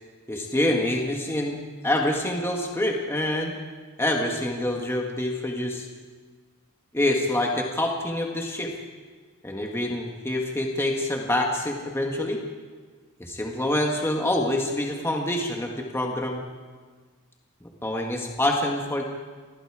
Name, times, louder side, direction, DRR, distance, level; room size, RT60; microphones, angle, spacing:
voice 1, 0.3-1.6 1.8-3.6 4.0-5.9 6.9-8.7 9.4-12.4 13.2-16.4 17.6-19.0, left 1 dB, 10° left, 1 dB, 1.7 m, -26 dB
27.5 x 20.5 x 4.9 m, 1.5 s
head